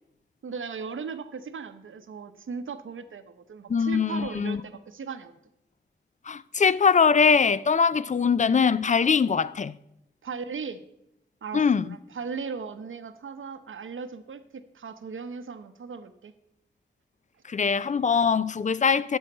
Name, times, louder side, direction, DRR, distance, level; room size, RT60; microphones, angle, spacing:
voice 1, 0.4-5.3 10.2-10.8 11.4-14.4 14.7-16.3, right 5 dB, 85° right, 0.8 m, -37 dB
voice 2, 3.7-4.6 6.3-9.8 11.5-12.0 17.5-19.2, left 6 dB, 40° left, 0.4 m, -22 dB
11.0 x 6.3 x 5.4 m
wide cardioid pair, 75°, 20 cm